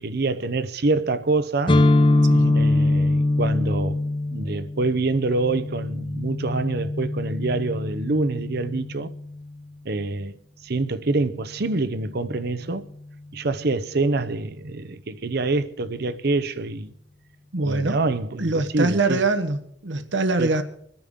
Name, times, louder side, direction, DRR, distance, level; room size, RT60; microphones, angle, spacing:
voice 1, 0.0-1.8 2.5-4.1 4.3-9.1 9.8-12.9 13.3-16.9 17.6-19.2 20.4-20.5, right 3 dB, 60° right, 0.7 m, -26 dB
sound 1, 1.7-9.4, left 2 dB, 30° left, 0.7 m, -23 dB
voice 2, 17.5-18.0 18.4-20.6, right 3 dB, 80° right, 1.1 m, -23 dB
26.0 x 10.5 x 3.7 m
head